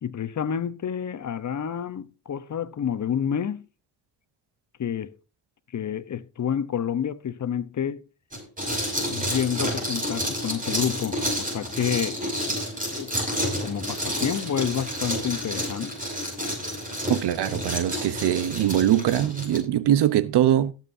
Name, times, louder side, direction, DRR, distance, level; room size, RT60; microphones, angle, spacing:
voice 1, 0.0-3.6 4.8-5.1 5.7-8.0 9.1-12.2 12.9-13.1 13.6-15.9, left 8 dB, 45° left, 0.9 m, -29 dB
sound 1, 8.3-19.6, equal, 20° right, 6.0 m, -30 dB
voice 2, 17.1-20.7, right 11 dB, 75° right, 0.9 m, -22 dB
18.0 x 7.4 x 2.7 m
cardioid pair, 85°, 40 cm